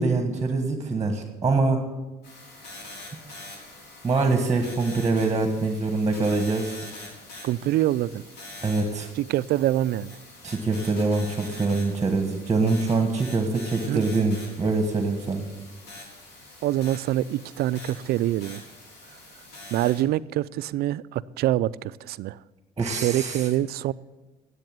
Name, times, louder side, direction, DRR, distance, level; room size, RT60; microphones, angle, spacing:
voice 1, 0.0-1.8 4.0-6.7 8.6-9.1 10.4-15.5 22.8-23.5, right 3 dB, 20° right, 1.4 m, -24 dB
sound 1, 2.2-20.0, left 2 dB, 80° left, 3.7 m, -44 dB
voice 2, 7.4-8.2 9.2-10.2 13.9-14.1 16.6-18.6 19.7-22.4 22.9-23.9, right 14 dB, 70° right, 0.4 m, -25 dB
10.5 x 8.2 x 7.6 m
cardioid pair, 110°, 17 cm